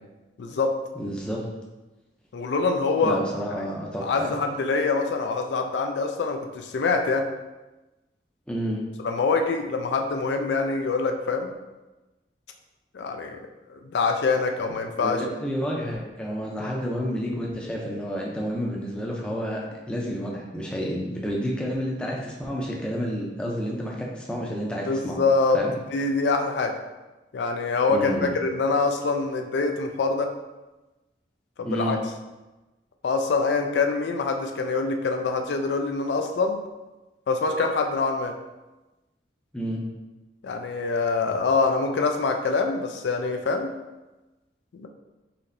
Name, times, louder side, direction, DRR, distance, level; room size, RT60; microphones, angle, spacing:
voice 1, 0.4-0.7 2.3-3.2 4.0-7.3 9.0-11.5 12.9-13.4 13.7-15.2 24.9-25.6 25.9-26.7 27.3-30.3 31.6-32.0 33.0-36.6 37.3-38.3 40.4-43.7 44.8-44.9, left 4 dB, 75° left, 4 dB, 0.4 m, -25 dB
voice 2, 0.9-1.4 3.0-4.3 8.5-8.8 15.0-25.2 25.5-25.7 27.9-28.3 31.6-32.0 39.5-39.8, equal, 5° left, -3 dB, 0.5 m, -30 dB
4.2 x 3.0 x 2.6 m, 1.1 s
head